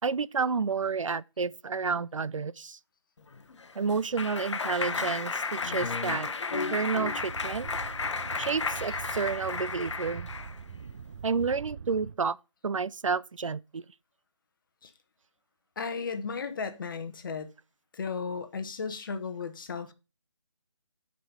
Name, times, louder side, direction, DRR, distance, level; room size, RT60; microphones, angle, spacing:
voice 1, 0.0-2.8 3.8-7.7 8.4-10.3 11.2-12.4 12.6-13.8, right 5 dB, 85° right, 0.5 m, -30 dB
Clapping, 3.3-10.6, left 4 dB, 65° left, 1.0 m, -33 dB
sound 1, 7.0-12.2, right 6 dB, 40° right, 0.5 m, -43 dB
voice 2, 15.8-17.5 17.9-19.9, left 5 dB, 40° left, 1.2 m, -35 dB
7.8 x 5.3 x 5.4 m
figure-of-eight pair, 160°, 16 cm